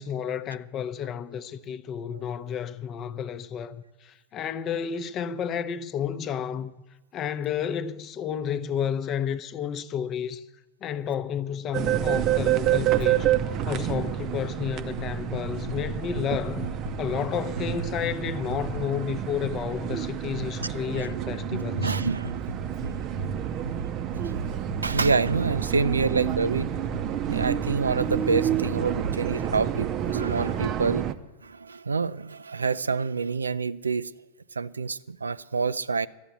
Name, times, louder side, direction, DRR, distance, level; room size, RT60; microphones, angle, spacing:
voice 1, 0.0-6.7 7.1-10.4 10.8-13.4 13.7-16.7 17.0-21.9, left 8 dB, 30° left, 0.7 m, -31 dB
sound 1, 11.7-31.1, right 10 dB, 35° right, 0.6 m, -29 dB
sound 2, 15.0-15.9 16.2-19.6 19.9-30.0, left 1 dB, 80° left, 0.4 m, -39 dB
voice 2, 21.5-22.3 24.8-26.7 27.3-31.0 31.4-34.1 34.6-36.1, right 4 dB, 75° right, 0.3 m, -27 dB
12.5 x 8.9 x 8.4 m
figure-of-eight pair, 90°, 0 cm